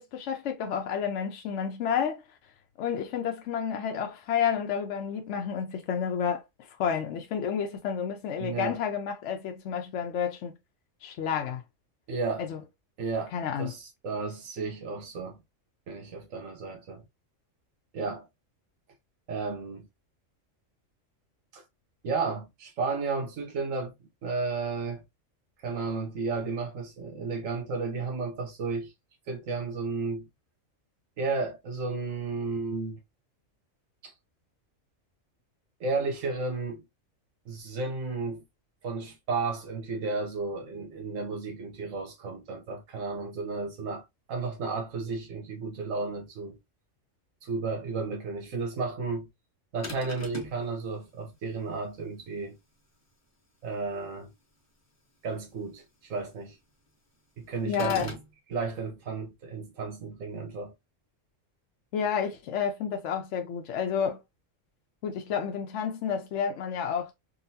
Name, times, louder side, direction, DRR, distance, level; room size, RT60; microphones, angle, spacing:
voice 1, 0.0-2.2 2.8-6.4 6.8-10.5 11.0-11.6 12.4-12.6 13.3-13.7 57.6-58.1 61.9-64.2 65.0-67.1, left 7 dB, 70° left, 0.9 m, -30 dB
voice 2, 8.4-8.8 12.1-12.5 13.0-13.3 13.6-15.4 15.9-17.0 17.9-18.3 19.3-19.8 21.5-21.6 22.0-23.9 24.2-25.0 25.6-28.9 29.3-30.3 31.2-33.0 34.0-34.1 35.8-36.8 37.5-38.4 38.8-44.0 44.3-46.6 47.4-49.3 49.7-52.6 53.6-54.3 55.2-56.6 57.4-58.2 58.5-60.7, right 4 dB, 85° right, 1.3 m, -33 dB
sound 1, 49.8-50.6 57.7-58.3, left 2 dB, 20° left, 0.5 m, -38 dB
3.8 x 2.3 x 2.6 m
omnidirectional pair, 1.3 m